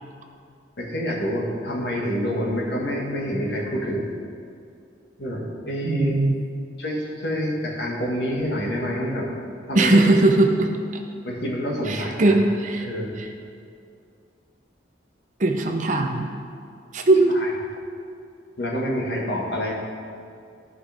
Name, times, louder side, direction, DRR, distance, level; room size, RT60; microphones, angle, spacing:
voice 1, 0.8-4.1 5.2-6.1 6.8-9.3 9.7-10.0 11.2-12.4 12.8-13.2 17.3-17.5 18.6-19.7, equal, 60° left, -2 dB, 1.7 m, -27 dB
voice 2, 5.8-6.3 9.7-10.7 11.9-12.9 13.2-13.3 15.4-16.3 16.9-17.3, right 2 dB, 40° right, 4 dB, 0.7 m, -19 dB
14.0 x 5.4 x 3.5 m, 2.4 s
head